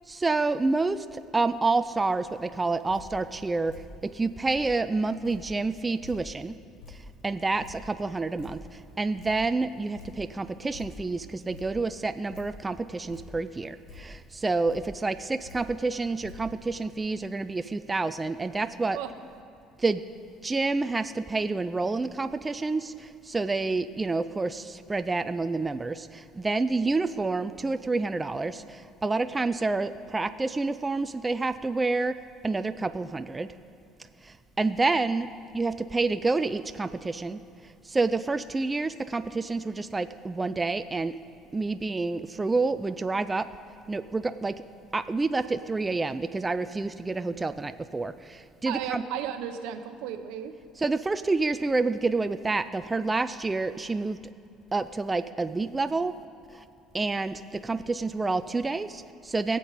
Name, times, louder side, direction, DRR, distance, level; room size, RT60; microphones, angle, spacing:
voice 1, 0.1-3.7 4.0-6.6 6.9-7.0 7.2-19.0 19.8-20.0 20.4-32.2 32.4-33.5 34.2-35.3 35.5-41.1 41.5-43.5 43.9-44.6 44.9-49.0 50.8-54.2 54.7-56.1 56.5-56.6 56.9-59.6, right 3 dB, 15° right, 10 dB, 0.4 m, -28 dB
Drip, 2.5-17.0, left 3 dB, 75° left, 3.4 m, -49 dB
voice 2, 48.7-50.6, right 9 dB, 85° right, 8 dB, 0.9 m, -34 dB
20.5 x 7.6 x 4.1 m, 2.5 s
cardioid pair, 120°, 0 cm